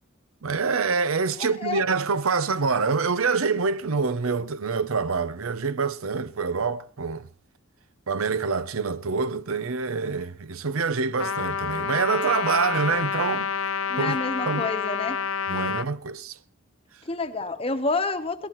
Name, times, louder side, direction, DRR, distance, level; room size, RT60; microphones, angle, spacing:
voice 1, 0.4-7.3 8.1-13.5 13.9-14.2 14.5-14.7 15.5-16.4, right 4 dB, 85° right, 0.7 m, -26 dB
voice 2, 1.4-1.8 13.9-15.2 17.0-18.5, left 3 dB, 25° left, 1.0 m, -29 dB
Trumpet, 11.2-15.9, left 6 dB, 75° left, 0.7 m, -28 dB
23.0 x 18.0 x 3.1 m
head